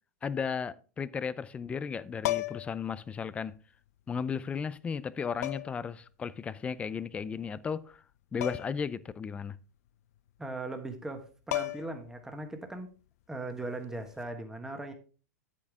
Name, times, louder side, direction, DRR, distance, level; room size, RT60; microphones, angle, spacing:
voice 1, 0.2-3.6 4.1-8.0 8.3-9.6, left 6 dB, 15° left, 0.4 m, -35 dB
sound 1, 2.2-2.8 4.1-4.2 5.4-5.9 8.4-8.8 9.2-9.3 11.1-11.2 11.5-12.1 14.1-14.3, left 17 dB, 75° left, 0.4 m, -34 dB
voice 2, 10.4-12.9 13.3-14.9, right 2 dB, 5° right, 1.4 m, -39 dB
8.7 x 8.5 x 3.6 m
supercardioid pair, 145°, 9 cm